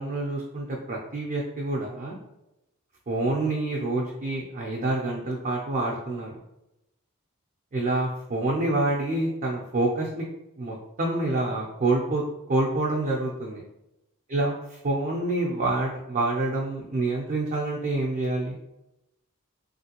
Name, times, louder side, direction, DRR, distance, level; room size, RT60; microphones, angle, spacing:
voice 1, 0.0-2.2 3.1-6.4 7.7-10.3 10.6-13.6 14.3-18.6, right 2 dB, 35° right, -2 dB, 0.4 m, -27 dB
3.1 x 2.5 x 2.8 m, 0.90 s
head